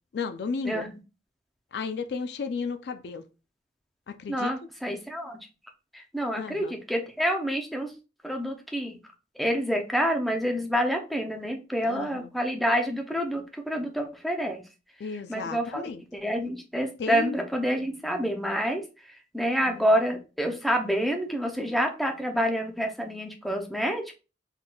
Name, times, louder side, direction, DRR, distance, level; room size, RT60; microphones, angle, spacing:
voice 1, 0.1-0.8 1.7-3.2 4.1-4.5 6.4-6.7 11.8-12.3 15.0-16.0 17.0-17.4 19.7-19.8, left 5 dB, 60° left, 0.3 m, -33 dB
voice 2, 4.3-5.4 5.9-7.9 8.2-9.0 9.4-14.6 15.3-15.8 16.1-18.8 19.3-24.2, equal, ahead, 0.5 m, -28 dB
3.9 x 3.5 x 2.2 m
head